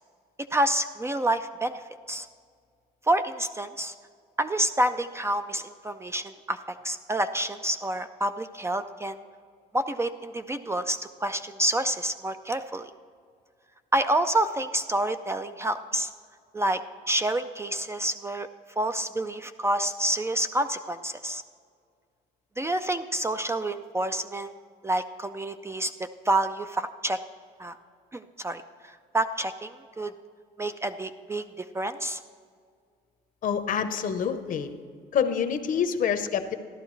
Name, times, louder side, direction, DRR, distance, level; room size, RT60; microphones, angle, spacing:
voice 1, 0.5-1.8 2.1-2.3 3.1-3.9 4.4-6.6 6.8-9.2 9.7-12.9 13.9-16.1 16.5-16.8 17.1-18.5 18.8-21.4 22.6-24.5 24.8-25.9 26.3-27.2 27.6-27.8 28.1-30.1 30.6-31.5 31.7-32.2, right 1 dB, 15° right, 9 dB, 0.4 m, -28 dB
voice 2, 33.4-34.7 35.1-36.5, left 7 dB, 55° left, 9 dB, 0.8 m, -26 dB
14.0 x 11.5 x 3.2 m, 2.1 s
cardioid pair, 110°, 17 cm